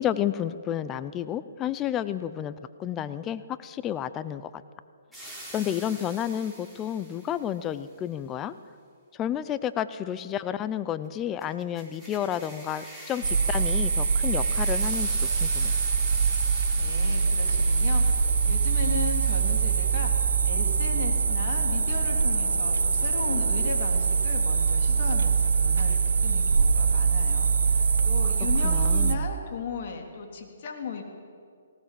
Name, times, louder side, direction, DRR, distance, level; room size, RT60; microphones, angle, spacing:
voice 1, 0.0-4.5 5.5-8.5 9.1-15.7 28.6-29.2, left 10 dB, 20° left, 14 dB, 0.7 m, -31 dB
sound 1, 5.1-7.5 11.4-20.3, right 1 dB, 5° left, 4.5 m, -44 dB
sound 2, 13.2-29.2, right 5 dB, 80° right, 1.0 m, -23 dB
voice 2, 16.8-31.0, left 5 dB, 50° left, 3 dB, 3.6 m, -36 dB
18.5 x 18.5 x 7.7 m, 2.1 s
hypercardioid pair, 145°, 0 cm